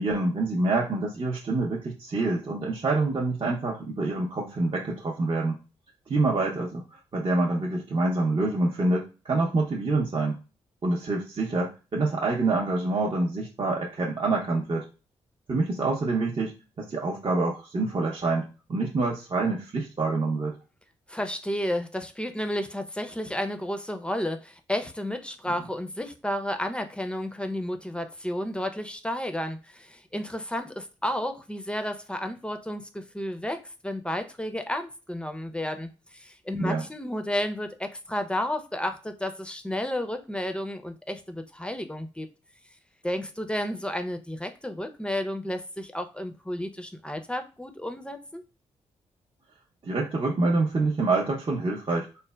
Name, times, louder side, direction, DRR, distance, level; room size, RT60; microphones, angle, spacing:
voice 1, 0.0-5.6 6.1-10.4 10.8-14.8 15.5-20.5 36.6-36.8 49.8-52.1, right 3 dB, 40° right, -2 dB, 0.7 m, -26 dB
voice 2, 21.1-42.3 43.0-48.4, left 1 dB, 10° left, 7 dB, 0.5 m, -32 dB
3.1 x 2.1 x 2.2 m, 0.33 s
hypercardioid pair, 40°, 13 cm